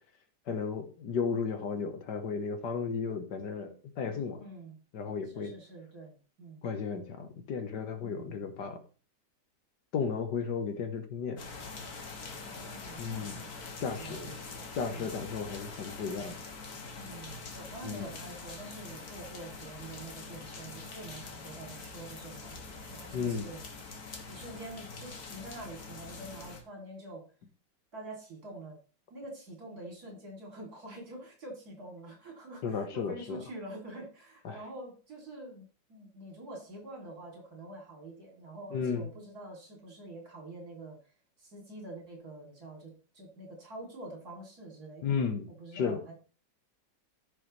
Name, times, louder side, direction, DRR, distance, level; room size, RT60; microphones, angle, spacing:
voice 1, 0.5-4.4 4.9-5.5 6.6-8.8 9.9-11.4 13.0-13.4 13.8-14.3 14.8-16.4 17.8-18.1 23.1-23.5 32.6-33.4 34.5-34.6 38.7-39.1 45.0-46.0, left 5 dB, 75° left, 7 dB, 1.8 m, -34 dB
voice 2, 4.4-4.8 5.3-6.6 8.0-8.4 12.4-13.5 14.0-15.1 16.9-23.6 24.3-27.3 27.9-28.8 29.1-41.0 41.4-45.1 45.6-46.1, right 1 dB, 60° right, 0 dB, 3.5 m, -46 dB
sound 1, 11.4-26.6, left 4 dB, 60° left, 2.0 m, -44 dB
14.5 x 5.9 x 3.2 m, 0.36 s
omnidirectional pair, 1.9 m